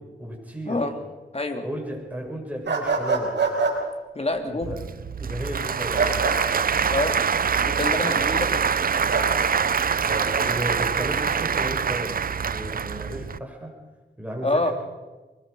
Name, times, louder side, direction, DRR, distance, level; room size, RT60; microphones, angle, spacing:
voice 1, 0.2-0.8 1.6-3.3 4.5-4.8 5.2-6.2 8.1-8.3 10.0-13.7 14.2-14.7, equal, 10° right, -1 dB, 7.9 m, -34 dB
voice 2, 1.3-1.6 4.1-4.8 6.9-7.2 7.6-8.7 14.4-14.7, left 2 dB, 35° left, 5 dB, 3.0 m, -26 dB
sound 1, 2.7-3.8 5.9-6.4 9.1-9.3 10.1-10.5, right 4 dB, 70° right, 4.9 m, -24 dB
Applause / Crowd, 4.6-13.4, right 6 dB, 50° right, 0.6 m, -24 dB
23.5 x 21.0 x 5.6 m, 1.2 s
cardioid pair, 60°, 19 cm